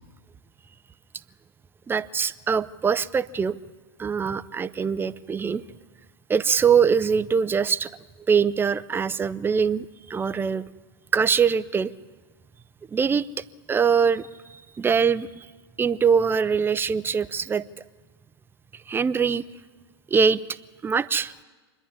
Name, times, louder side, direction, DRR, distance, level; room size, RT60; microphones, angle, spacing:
voice 1, 1.9-3.6 4.0-5.6 6.3-7.9 8.3-10.6 11.1-11.9 12.9-15.5 15.8-17.6 18.7-19.4 20.1-20.4 20.8-21.3, right 6 dB, 15° right, 15 dB, 0.5 m, -23 dB
25.5 x 11.0 x 9.7 m, 1.4 s
hypercardioid pair, 110°, 14 cm